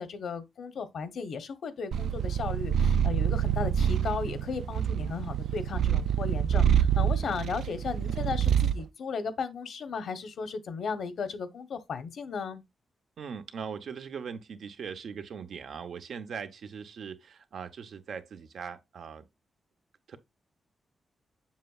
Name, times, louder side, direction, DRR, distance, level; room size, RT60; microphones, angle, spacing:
voice 1, 0.0-12.6, left 5 dB, 70° left, 0.9 m, -35 dB
Purr, 1.9-8.8, right 9 dB, 85° right, 0.3 m, -26 dB
voice 2, 13.2-19.3 20.1-20.2, right 6 dB, 70° right, 0.8 m, -40 dB
7.4 x 6.7 x 2.4 m
wide cardioid pair, 135°, 0 cm